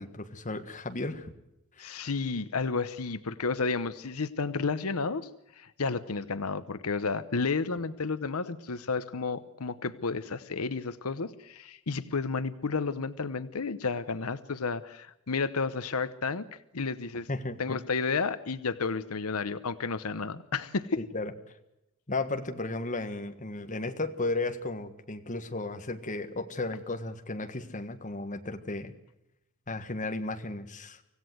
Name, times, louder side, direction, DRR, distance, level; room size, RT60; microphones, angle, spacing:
voice 1, 0.0-1.3 1.8-2.0 17.3-17.8 21.0-21.3 22.1-28.9 29.7-31.0, left 2 dB, 35° left, 7 dB, 1.6 m, -34 dB
voice 2, 1.8-16.5 16.7-17.3 17.6-21.0, left 4 dB, 85° left, 13 dB, 0.9 m, -32 dB
25.5 x 16.5 x 7.8 m, 0.86 s
head